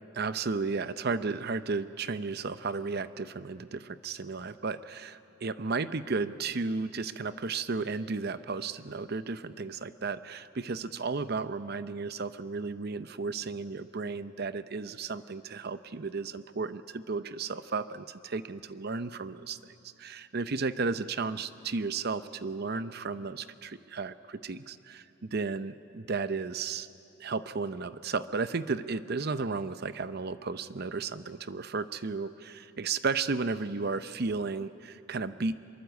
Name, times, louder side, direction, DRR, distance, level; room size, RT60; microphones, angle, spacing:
voice 1, 0.1-26.9 27.2-35.6, right 4 dB, 50° right, 13 dB, 0.7 m, -34 dB
24.0 x 22.5 x 8.1 m, 2.6 s
head